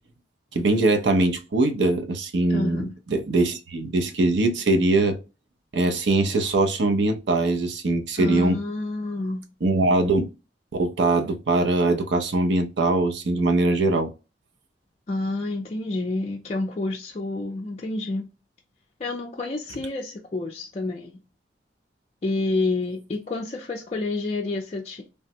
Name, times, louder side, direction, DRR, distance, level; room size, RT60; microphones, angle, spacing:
voice 1, 0.5-5.2 5.7-8.6 9.6-10.3 10.8-14.1, right 2 dB, 70° right, 0.6 m, -22 dB
voice 2, 2.5-2.9 8.2-9.4 15.1-18.3 19.0-21.2 22.2-25.1, left 2 dB, 35° left, 0.4 m, -29 dB
3.3 x 2.1 x 2.7 m
head